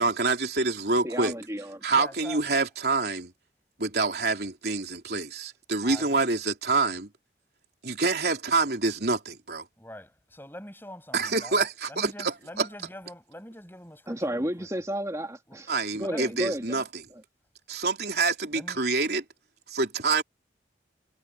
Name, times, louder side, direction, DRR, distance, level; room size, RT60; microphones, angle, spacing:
voice 1, 0.0-1.3 1.8-3.3 3.8-7.1 7.8-9.7 11.1-12.7 15.7-17.0 17.7-19.2 19.7-20.2, right 3 dB, 60° right, 3.5 m, -26 dB
voice 2, 1.0-1.8 14.1-16.8 17.1-17.2, equal, 15° right, 2.3 m, -32 dB
voice 3, 1.9-2.4 5.8-6.3 9.8-14.7 15.5-15.6 16.0-16.3 18.5-18.8, left 1 dB, 10° left, 7.8 m, -44 dB
head